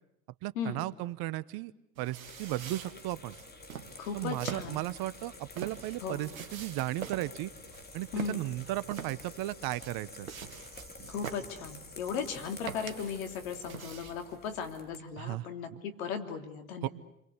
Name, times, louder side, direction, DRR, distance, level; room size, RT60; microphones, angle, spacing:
voice 1, 0.4-1.7 2.0-3.3 4.1-7.5 7.9-10.3 15.2-15.5 16.8-16.9, right 16 dB, 60° right, 17 dB, 1.2 m, -35 dB
sound 1, 2.0-14.4, right 8 dB, 90° right, 1.6 m, -46 dB
sound 2, 2.2-15.0, left 3 dB, 25° left, 3.6 m, -50 dB
voice 2, 4.0-4.9 6.0-6.2 8.1-8.4 11.1-16.9, left 6 dB, 75° left, 6 dB, 3.1 m, -37 dB
29.5 x 23.5 x 8.2 m, 0.80 s
hypercardioid pair, 65°, 41 cm